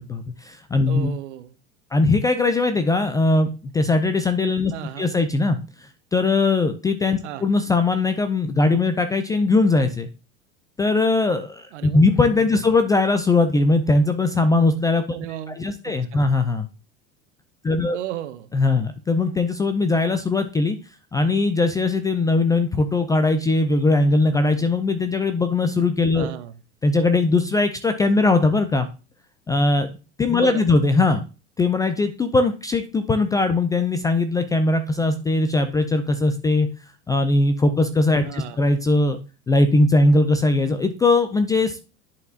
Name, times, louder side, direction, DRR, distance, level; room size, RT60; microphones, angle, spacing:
voice 1, 0.1-1.1 1.9-4.7 5.0-5.6 6.1-10.1 10.8-15.2 15.5-16.7 17.6-18.0 18.5-20.8 21.1-26.3 26.8-28.9 29.5-29.9 30.2-31.2 31.6-36.7 37.1-39.2 39.5-41.8, left 3 dB, 10° left, 8 dB, 0.3 m, -20 dB
voice 2, 0.9-1.5 4.7-5.1 7.2-7.5 11.7-12.0 12.5-12.6 15.1-16.2 17.9-18.5 26.1-26.6 30.3-30.8 38.2-38.6, right 12 dB, 65° right, 10 dB, 0.9 m, -35 dB
10.5 x 4.2 x 2.5 m, 0.32 s
figure-of-eight pair, 80°, 39 cm